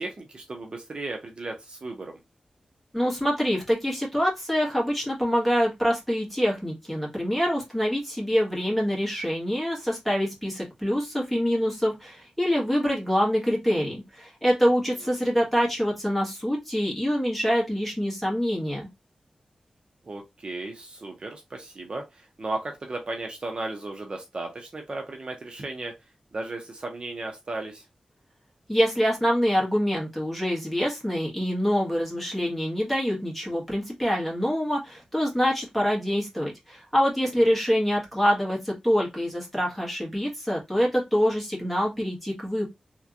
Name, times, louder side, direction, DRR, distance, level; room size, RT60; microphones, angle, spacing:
voice 1, 0.0-2.1 20.0-26.0 26.3-27.8 37.4-37.5, right 2 dB, 45° right, 0.6 m, -35 dB
voice 2, 2.9-18.9 28.7-42.7, equal, 5° left, 1.5 m, -25 dB
3.3 x 2.9 x 2.5 m
wide cardioid pair, 105°, 2 cm